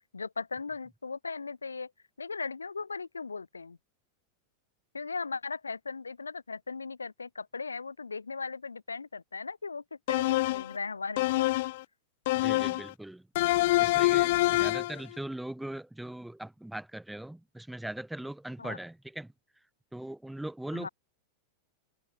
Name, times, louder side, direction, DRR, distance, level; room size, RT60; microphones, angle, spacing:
voice 1, 0.1-1.9 2.2-3.8 4.9-11.5 18.6-18.8 20.7-20.9, left 4 dB, 75° left, 4.6 m, -38 dB
sound 1, 10.1-10.7 11.2-11.8 12.3-12.9 13.4-15.0, left 19 dB, 50° left, 0.9 m, -26 dB
voice 2, 12.3-13.3 13.8-19.3 19.9-20.9, right 1 dB, 5° right, 3.2 m, -40 dB
figure-of-eight pair, 90°, 0 cm